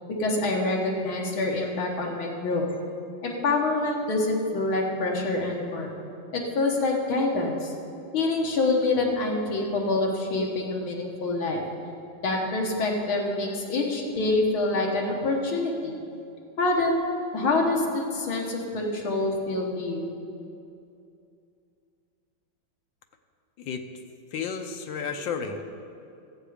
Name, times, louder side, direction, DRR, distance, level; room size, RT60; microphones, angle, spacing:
voice 1, 0.2-2.7 3.2-5.9 6.3-7.7 8.1-11.6 12.2-16.0 16.6-16.9 17.3-20.1, left 2 dB, 90° left, -1 dB, 2.2 m, -26 dB
voice 2, 24.3-25.6, left 6 dB, 75° left, 6 dB, 1.4 m, -32 dB
14.0 x 8.0 x 5.0 m, 2.6 s
omnidirectional pair, 2.2 m